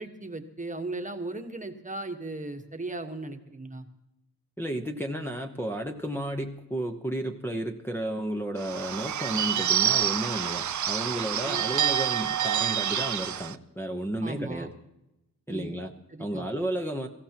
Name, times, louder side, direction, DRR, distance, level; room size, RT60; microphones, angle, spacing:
voice 1, 0.0-3.8 11.4-11.6 14.2-14.7 15.5-15.7 16.1-16.4, right 2 dB, 20° right, 5 dB, 1.3 m, -37 dB
voice 2, 4.6-14.7 15.5-15.9 16.2-17.1, right 1 dB, 5° left, 2 dB, 0.9 m, -32 dB
Bird / Bell, 8.6-13.5, right 10 dB, 60° right, 0.6 m, -27 dB
23.0 x 15.0 x 2.9 m, 0.91 s
wide cardioid pair, 105°, 34 cm